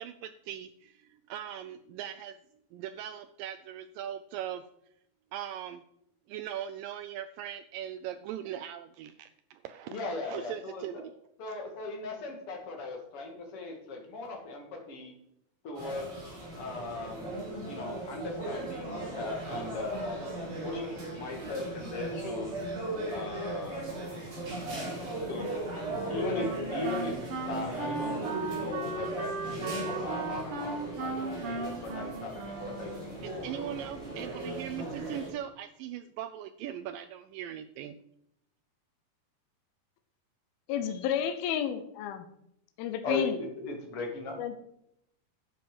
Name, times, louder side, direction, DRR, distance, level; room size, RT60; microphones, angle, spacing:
voice 1, 0.0-2.4 2.7-4.6 5.3-5.8 6.3-10.0 10.2-11.1 11.5-11.6 33.2-38.0, right 10 dB, 85° right, 10 dB, 1.9 m, -40 dB
voice 2, 9.9-11.0 11.4-15.1 15.6-16.1 16.6-20.2 20.6-22.6 23.1-23.9 25.0-25.5 25.8-27.2 27.5-33.5 43.0-44.4, left 3 dB, 40° left, 1 dB, 2.7 m, -38 dB
sound 1, 15.7-35.3, right 2 dB, 35° right, 4.5 m, -37 dB
Wind instrument woodwind instrument, 25.9-33.3, right 3 dB, 50° right, 1.7 m, -37 dB
voice 3, 40.7-42.3 42.8-43.3 44.4-44.6, left 9 dB, 80° left, 8 dB, 2.6 m, -31 dB
11.5 x 7.8 x 5.2 m, 0.76 s
omnidirectional pair, 4.4 m